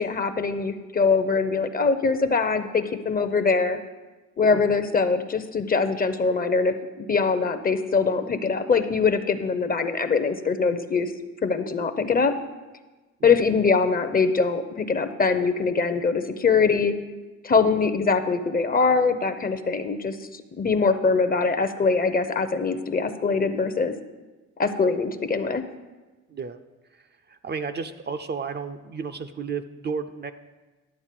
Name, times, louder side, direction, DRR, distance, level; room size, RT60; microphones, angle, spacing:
voice 1, 0.0-3.8 4.4-11.1 11.4-12.3 13.2-16.9 17.4-23.9 24.6-25.6, left 4 dB, 30° left, 9 dB, 0.7 m, -23 dB
voice 2, 27.4-30.3, right 5 dB, 35° right, 8 dB, 0.5 m, -32 dB
11.0 x 3.9 x 7.6 m, 1.2 s
cardioid pair, 90°, 30 cm